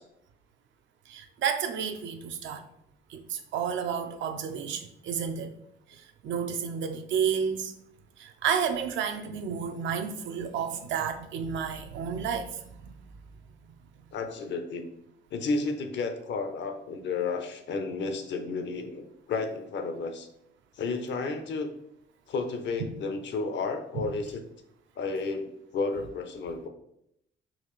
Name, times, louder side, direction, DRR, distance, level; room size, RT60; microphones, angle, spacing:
voice 1, 1.1-2.6 3.1-5.5 5.9-7.7 8.2-13.0 22.8-22.9 23.9-24.1, right 7 dB, 70° right, 7 dB, 0.5 m, -31 dB
voice 2, 14.1-14.9 15.3-20.3 20.8-21.7 22.3-24.4 25.0-25.5 25.7-26.7, left 4 dB, 65° left, 6 dB, 0.6 m, -32 dB
3.9 x 2.5 x 3.1 m, 0.77 s
cardioid pair, 90°, 20 cm